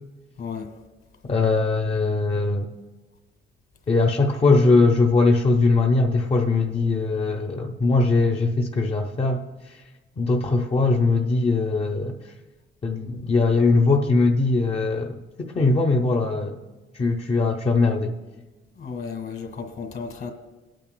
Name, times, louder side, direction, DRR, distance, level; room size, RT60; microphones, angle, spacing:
voice 1, 0.4-0.7 18.8-20.3, left 5 dB, 55° left, 4 dB, 1.7 m, -33 dB
voice 2, 1.3-2.7 3.9-9.8 10.2-12.2 12.8-16.6 16.9-18.1, left 3 dB, 30° left, 1 dB, 0.7 m, -21 dB
20.5 x 9.1 x 2.2 m, 1.2 s
cardioid pair, 90°, 20 cm